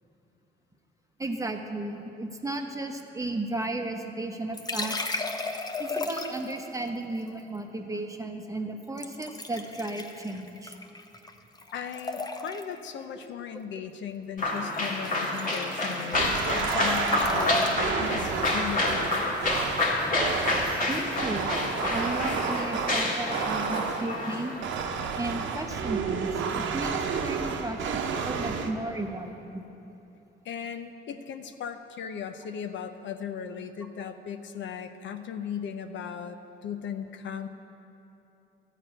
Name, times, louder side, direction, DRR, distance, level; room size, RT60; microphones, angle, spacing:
voice 1, 1.2-5.2 5.8-10.8 19.9-20.2 20.4-20.5 20.9-21.5 21.9-24.5 25.2-29.6, right 2 dB, 15° right, 4 dB, 0.9 m, -34 dB
sound 1, 4.5-6.6 9.0-11.3 11.6-12.8 14.6-14.8 15.0-17.7, left 2 dB, 20° left, 0.7 m, -34 dB
voice 2, 11.7-19.2 30.4-37.5, left 7 dB, 70° left, 8 dB, 0.6 m, -37 dB
sound 2, 14.4-24.6, left 1 dB, 45° left, 1.9 m, -28 dB
sound 3, 16.1-24.2 24.6-28.7, right 5 dB, 75° right, 0.9 m, -31 dB
12.5 x 4.9 x 8.8 m, 2.9 s
cardioid pair, 90°, 20 cm